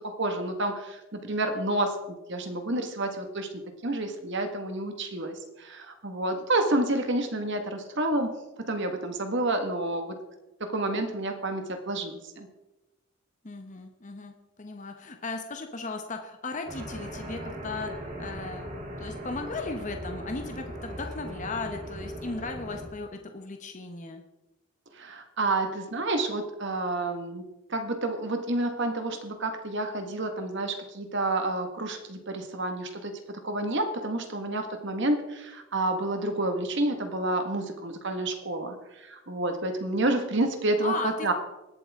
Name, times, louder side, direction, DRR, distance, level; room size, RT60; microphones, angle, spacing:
voice 1, 0.0-3.5 3.8-8.3 8.7-10.2 10.6-12.5 24.9-27.4 27.7-38.8 39.0-41.3, right 2 dB, 55° right, 6 dB, 1.7 m, -29 dB
voice 2, 13.4-24.2 40.8-41.3, left 3 dB, 35° left, 5 dB, 1.0 m, -36 dB
sound 1, 16.7-22.9, right 1 dB, 40° right, 3.1 m, -39 dB
20.0 x 7.9 x 3.7 m, 0.99 s
head